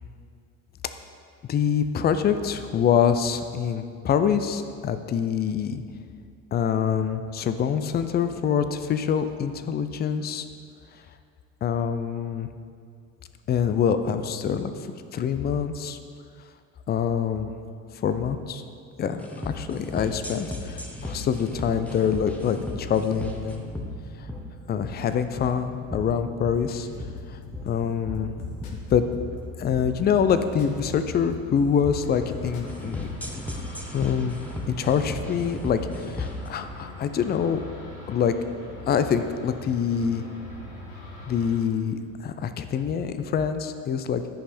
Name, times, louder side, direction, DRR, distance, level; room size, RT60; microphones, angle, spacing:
voice 1, 1.5-5.8 6.5-10.5 11.6-12.5 13.5-14.7 15.1-16.0 16.9-17.5 18.0-18.6 19.0-23.6 24.7-26.9 27.3-27.4 27.6-28.3 28.9-29.0 29.6-33.1 33.9-34.4 34.7-37.6 38.1-38.4 38.9-40.2 41.3-44.2, left 7 dB, 25° left, 10 dB, 0.5 m, -25 dB
sound 1, 19.2-36.5, left 1 dB, 5° left, 1.1 m, -36 dB
sound 2, 26.5-33.2, left 4 dB, 55° left, 1.2 m, -43 dB
sound 3, 31.9-41.6, left 1 dB, 85° left, 1.7 m, -42 dB
10.0 x 5.4 x 4.2 m, 2.3 s
hypercardioid pair, 65°, 41 cm